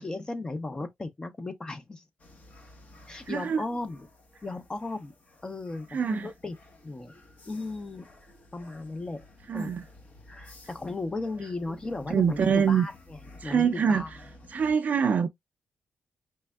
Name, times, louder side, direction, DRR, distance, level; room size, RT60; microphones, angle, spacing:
voice 1, 0.0-2.0 3.1-4.1 4.4-5.1 5.4-6.5 6.8-7.1 7.5-8.1 8.5-9.2 9.5-9.7 10.3-12.9 13.4-14.1, left 2 dB, 25° left, 0.5 m, -35 dB
sound 1, 2.2-14.7, left 1 dB, 50° left, 0.9 m, -53 dB
voice 2, 3.3-3.6 5.9-6.3 9.5-9.8 12.1-12.9 13.4-14.0 14.5-15.3, right 7 dB, 55° right, 0.3 m, -24 dB
4.2 x 3.3 x 2.2 m
wide cardioid pair, 115°, 3 cm